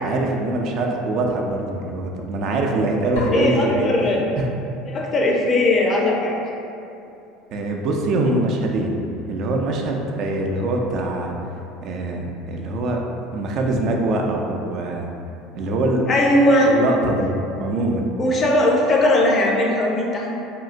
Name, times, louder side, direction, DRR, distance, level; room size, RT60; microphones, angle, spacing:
voice 1, 0.0-4.5 7.5-9.0 9.3-11.3 11.8-13.0 13.3-15.1 15.5-16.1 16.6-17.3 17.6-18.1, right 2 dB, 55° right, 1 dB, 0.3 m, -23 dB
sound 1, 3.2-5.0, left 2 dB, 90° left, 0.6 m, -33 dB
voice 2, 3.3-4.2 4.9-6.3 16.1-16.7 18.2-20.3, left 1 dB, 35° left, -1 dB, 0.5 m, -18 dB
3.6 x 2.1 x 2.4 m, 2.6 s
supercardioid pair, 100°, 0 cm